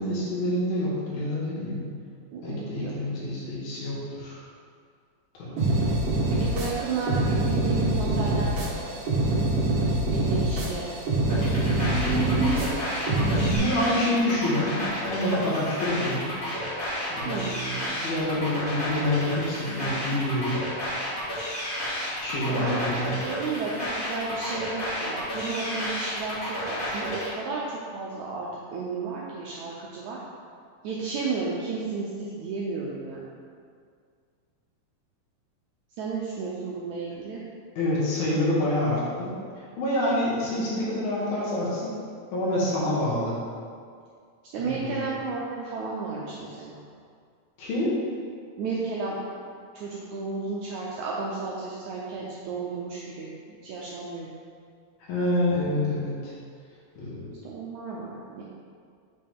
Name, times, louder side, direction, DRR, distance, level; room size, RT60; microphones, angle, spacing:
voice 1, 0.0-1.9 2.4-4.4 5.3-5.5 11.8-12.6 13.1-16.3 17.1-17.8 18.0-20.6 22.2-23.2 37.8-39.3 39.8-41.9 42.3-43.4 44.6-45.1 47.6-48.0 55.0-56.3 57.0-57.3, left 1 dB, 80° left, -6 dB, 3.3 m, -27 dB
voice 2, 2.3-2.9 6.4-8.6 10.1-10.9 17.3-17.5 22.4-30.2 30.8-33.2 36.0-37.4 44.5-46.8 48.6-49.2 49.7-54.3 57.4-58.4, right 4 dB, 85° right, -4 dB, 1.7 m, -33 dB
sound 1, 5.6-13.6, right 2 dB, 60° right, 1.7 m, -25 dB
sound 2, 11.3-27.3, equal, 35° left, 1.5 m, -32 dB
6.9 x 5.4 x 3.5 m, 2.1 s
omnidirectional pair, 4.1 m